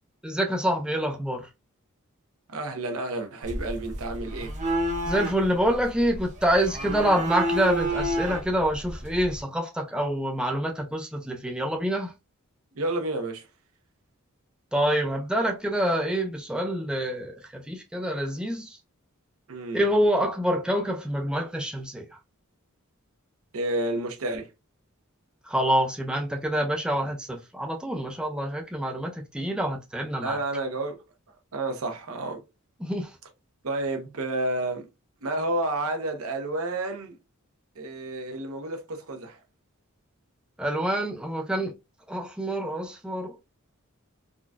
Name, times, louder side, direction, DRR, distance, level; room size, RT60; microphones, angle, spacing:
voice 1, 0.2-1.5 5.1-12.1 14.7-18.8 19.7-22.0 25.5-30.4 32.8-33.1 40.6-41.7 42.1-43.4, equal, 5° right, 0.5 m, -26 dB
voice 2, 2.5-4.5 12.8-13.5 19.5-19.8 23.5-24.5 30.2-31.0 31.5-32.4 33.6-34.9 35.2-37.2 37.8-39.4, right 2 dB, 70° right, 0.7 m, -30 dB
sound 1, 3.4-9.4, right 1 dB, 35° right, 0.8 m, -31 dB
3.8 x 2.4 x 2.3 m
head